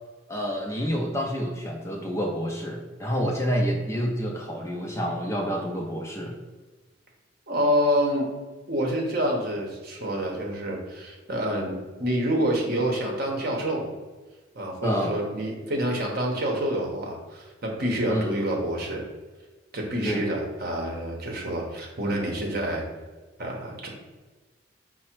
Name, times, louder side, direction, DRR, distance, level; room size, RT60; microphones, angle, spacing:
voice 1, 0.3-6.4 14.8-15.2 18.1-18.3 20.0-20.2, equal, 15° left, 0 dB, 0.4 m, -28 dB
voice 2, 7.5-8.3 8.7-11.7 12.0-13.9 14.5-19.1 19.7-22.8 23.4-23.9, equal, 50° right, 0 dB, 0.9 m, -27 dB
4.7 x 2.1 x 4.5 m, 1.3 s
head